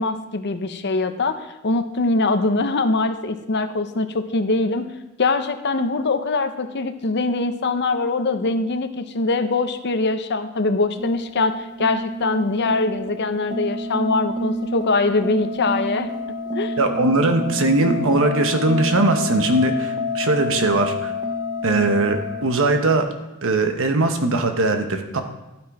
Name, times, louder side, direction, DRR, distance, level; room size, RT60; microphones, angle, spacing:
voice 1, 0.0-4.9 5.2-16.1 16.5-16.7, left 3 dB, 50° left, 9 dB, 0.7 m, -22 dB
sound 1, 11.0-23.0, left 2 dB, 20° right, 0.6 m, -29 dB
voice 2, 16.8-21.1 21.6-23.1 23.4-25.2, right 2 dB, 65° right, 6 dB, 1.1 m, -20 dB
12.0 x 6.1 x 4.8 m, 0.98 s
head